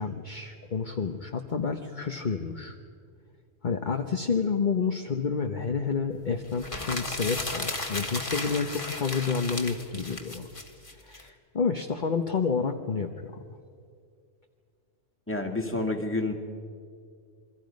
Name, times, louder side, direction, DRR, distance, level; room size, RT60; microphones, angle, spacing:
voice 1, 0.0-2.8 3.6-10.5 11.0-13.4, left 5 dB, 45° left, 4 dB, 1.0 m, -29 dB
sound 1, 6.5-11.2, left 2 dB, 30° left, 1.7 m, -34 dB
voice 2, 15.3-16.3, left 2 dB, 10° left, 3 dB, 1.9 m, -29 dB
28.0 x 23.5 x 5.3 m, 2.2 s
omnidirectional pair, 1.2 m